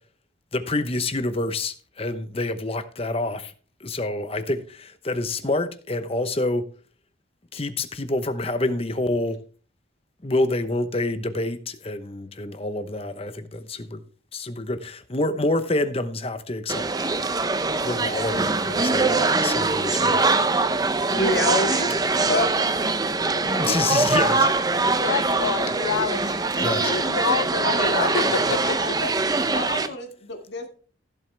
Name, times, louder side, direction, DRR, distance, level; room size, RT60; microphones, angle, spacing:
voice 1, 0.5-3.5 3.8-6.6 7.5-9.4 10.2-14.0 14.3-16.9 17.8-20.2 23.4-24.5 26.6-26.9, left 2 dB, 30° left, 0.9 m, -27 dB
sound 1, 16.7-29.9, right 3 dB, 20° right, 0.6 m, -23 dB
voice 2, 21.0-21.9 22.3-22.5 22.8-22.9 23.3-24.0 27.6-29.1 29.4-30.7, left 2 dB, 55° left, 2.0 m, -28 dB
voice 3, 25.0-29.0, left 6 dB, 90° left, 0.5 m, -29 dB
16.0 x 7.8 x 3.4 m
head